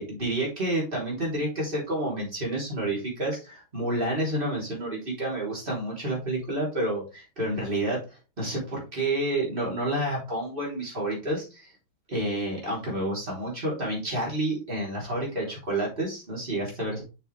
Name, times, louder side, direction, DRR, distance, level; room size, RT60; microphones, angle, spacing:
voice 1, 0.0-11.7 12.1-17.0, right 1 dB, 25° right, -4 dB, 3.7 m, -29 dB
6.5 x 6.3 x 3.4 m, 0.30 s
omnidirectional pair, 2.2 m